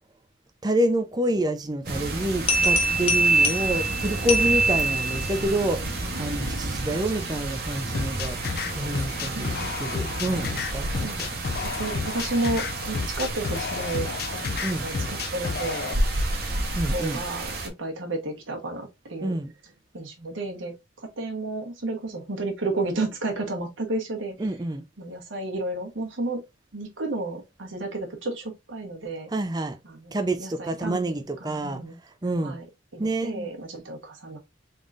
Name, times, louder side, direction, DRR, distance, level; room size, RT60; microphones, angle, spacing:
voice 1, 0.6-8.4 8.7-11.3 14.6-14.9 16.7-17.2 19.2-19.5 24.4-24.8 29.3-29.8 30.1-32.6 33.0-33.5, right 1 dB, 20° right, 0.5 m, -28 dB
sound 1, 1.9-17.7, right 2 dB, 50° right, 0.9 m, -31 dB
sound 2, 2.5-5.4, right 2 dB, 30° left, 0.9 m, -23 dB
voice 2, 6.1-6.6 9.3-9.7 10.3-10.4 11.0-11.2 11.6-14.1 14.8-16.0 16.6-19.3 19.9-24.4 25.0-26.4 26.7-29.3 29.8-31.1 31.4-32.0 32.4-32.6 32.9-34.4, right 2 dB, 85° right, 1.2 m, -32 dB
sound 3, 7.9-15.9, left 5 dB, 50° left, 0.3 m, -32 dB
3.8 x 3.6 x 2.5 m
head